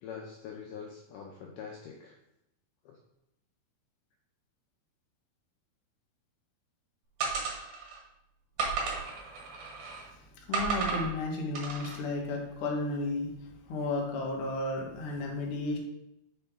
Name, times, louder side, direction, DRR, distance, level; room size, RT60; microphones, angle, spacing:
voice 1, 0.0-2.2 2.9-3.0, left 6 dB, 75° left, 0 dB, 2.1 m, -44 dB
sound 1, 7.2-8.0 8.6-10.1 10.5-11.1 11.6-12.0, right 4 dB, 60° right, 2.6 m, -33 dB
voice 2, 9.9-15.8, left 2 dB, 60° left, 0 dB, 1.5 m, -34 dB
6.8 x 5.7 x 3.6 m, 0.83 s
omnidirectional pair, 4.5 m